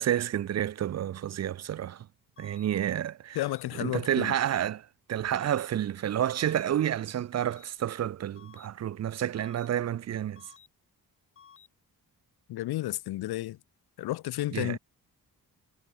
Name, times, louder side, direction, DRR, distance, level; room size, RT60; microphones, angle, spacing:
voice 1, 0.0-2.1 2.4-3.4 3.8-10.4 14.5-14.8, right 11 dB, 45° right, 0.4 m, -30 dB
sound 1, 2.4-2.7 3.4-3.7 4.4-4.7 5.4-5.7 6.4-6.7 7.4-7.7 8.4-8.7 9.4-9.7 10.4-10.7 11.4-11.7, left 7 dB, 35° left, 0.6 m, -54 dB
voice 2, 3.4-4.3 12.5-13.6 14.0-14.8, left 16 dB, 90° left, 0.5 m, -32 dB
wide cardioid pair, 115°, 37 cm